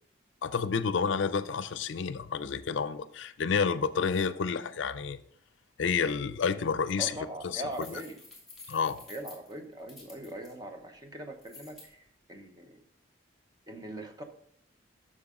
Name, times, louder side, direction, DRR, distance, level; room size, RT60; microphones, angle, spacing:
voice 1, 0.4-5.2 5.8-7.1 7.4-7.6 8.7-9.0, left 6 dB, 70° left, 14 dB, 0.4 m, -29 dB
voice 2, 7.0-8.2 9.1-12.8 13.7-14.2, right 1 dB, 20° right, 5 dB, 0.8 m, -41 dB
sound 1, 7.7-10.5 11.4-11.9, left 3 dB, ahead, 2.8 m, -51 dB
7.9 x 6.3 x 3.7 m, 0.64 s
head